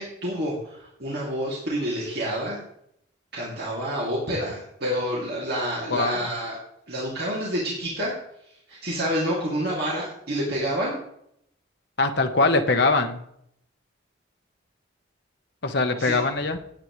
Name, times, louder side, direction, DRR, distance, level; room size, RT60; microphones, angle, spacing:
voice 1, 0.0-2.6 3.3-6.6 6.9-8.1 8.7-11.0 16.0-16.2, equal, 50° right, -5 dB, 2.8 m, -28 dB
voice 2, 12.0-13.2 15.6-16.6, left 3 dB, 55° left, 6 dB, 1.1 m, -22 dB
17.5 x 8.7 x 3.3 m, 0.71 s
head